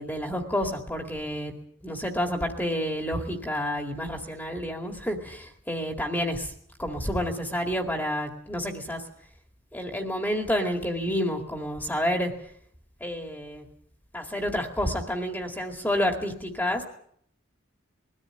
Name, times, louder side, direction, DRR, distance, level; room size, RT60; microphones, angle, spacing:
voice 1, 0.0-1.5 1.8-6.5 6.8-9.0 9.7-12.3 13.0-13.6 14.1-16.8, equal, 10° left, 3 dB, 2.2 m, -29 dB
22.0 x 14.5 x 9.1 m, 0.66 s
head